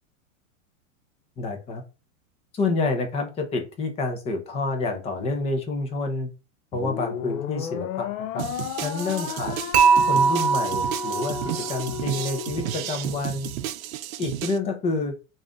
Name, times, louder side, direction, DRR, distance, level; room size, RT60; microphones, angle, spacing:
voice 1, 1.4-1.8 2.5-6.3 6.7-8.5 8.8-9.6 10.1-13.5 14.2-15.1, left 3 dB, 15° left, 5 dB, 0.6 m, -28 dB
sound 1, 6.7-13.2, left 10 dB, 80° left, 0.6 m, -34 dB
sound 2, 8.4-14.6, right 13 dB, 85° right, 0.6 m, -33 dB
Dishes pots and pans / Chink clink, 9.7-11.9, right 5 dB, 55° right, 1.1 m, -21 dB
3.9 x 2.6 x 3.5 m, 0.30 s
supercardioid pair, 150°, 40 cm